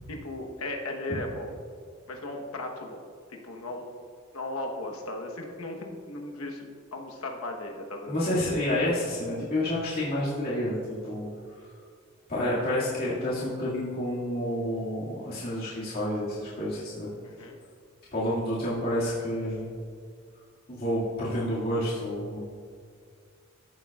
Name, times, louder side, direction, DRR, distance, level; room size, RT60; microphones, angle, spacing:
voice 1, 0.1-1.6 2.1-3.0 3.3-4.0 4.3-8.2 17.2-17.6, left 2 dB, 80° left, 2 dB, 1.1 m, -36 dB
voice 2, 8.1-11.3 12.3-17.1 18.1-19.7 20.7-22.4, left 1 dB, 45° left, -9 dB, 2.0 m, -29 dB
14.0 x 7.6 x 2.4 m, 2.1 s
head